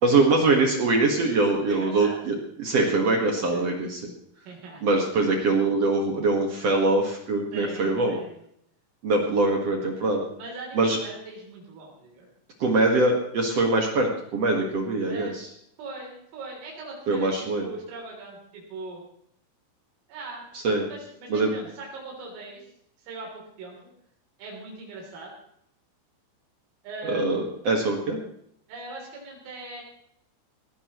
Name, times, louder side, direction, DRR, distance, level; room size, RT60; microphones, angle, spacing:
voice 1, 0.0-4.0 4.8-8.2 9.0-10.3 10.7-11.0 12.6-15.5 17.1-17.6 20.6-20.8 21.3-21.5 27.0-28.2, right 2 dB, 65° right, 1 dB, 1.5 m, -23 dB
voice 2, 1.7-2.3 3.5-3.6 4.5-5.3 7.5-8.4 10.4-12.3 15.1-15.4 15.8-19.0 20.1-20.5 20.8-22.7 23.0-23.8 24.4-25.3 26.8-27.5 28.7-29.8, right 3 dB, 90° right, -2 dB, 6.1 m, -40 dB
20.0 x 16.5 x 3.1 m, 0.69 s
omnidirectional pair, 5.7 m